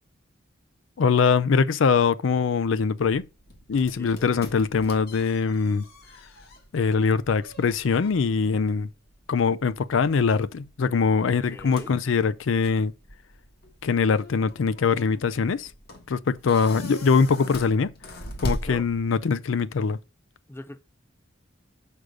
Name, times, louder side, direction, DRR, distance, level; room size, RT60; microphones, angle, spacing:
voice 1, 1.0-3.2 3.7-5.8 6.7-8.9 9.3-12.9 13.8-15.7 16.1-17.9 18.4-20.0, left 5 dB, 75° left, 0.4 m, -22 dB
sound 1, 3.0-19.4, equal, 55° left, 1.6 m, -41 dB
voice 2, 4.0-4.5 11.2-12.0 18.4-18.9 20.5-20.8, left 1 dB, 10° left, 0.5 m, -42 dB
6.4 x 5.1 x 6.4 m
head